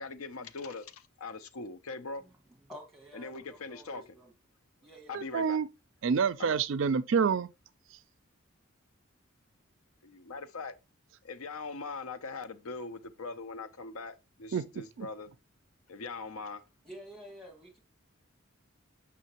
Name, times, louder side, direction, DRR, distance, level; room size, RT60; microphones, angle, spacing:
voice 1, 0.0-2.2 3.1-4.2 5.1-5.6 6.4-6.6 10.0-10.7 11.2-15.3 15.9-16.6, left 4 dB, 90° left, 0.6 m, -41 dB
voice 2, 2.7-4.3 4.8-5.2 5.5-5.6 16.8-17.8, equal, ahead, 1.9 m, -50 dB
voice 3, 5.1-5.7 6.0-7.5 14.5-14.7 15.0-15.1, right 6 dB, 60° right, 0.4 m, -27 dB
6.5 x 5.6 x 2.9 m
head